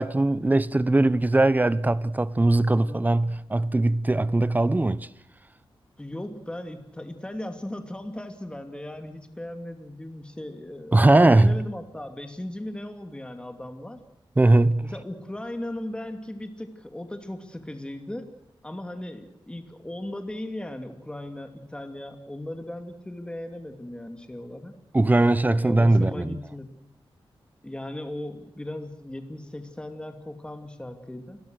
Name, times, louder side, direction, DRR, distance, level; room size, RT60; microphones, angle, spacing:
voice 1, 0.0-5.1 10.9-11.6 14.4-14.9 24.9-26.4, right 2 dB, 20° right, 0.9 m, -20 dB
voice 2, 2.8-3.2 6.0-14.0 14.8-18.3 18.6-24.7 25.6-26.7 27.6-31.4, left 1 dB, 10° left, 2.6 m, -37 dB
29.5 x 21.5 x 6.5 m
wide cardioid pair, 125°, 9 cm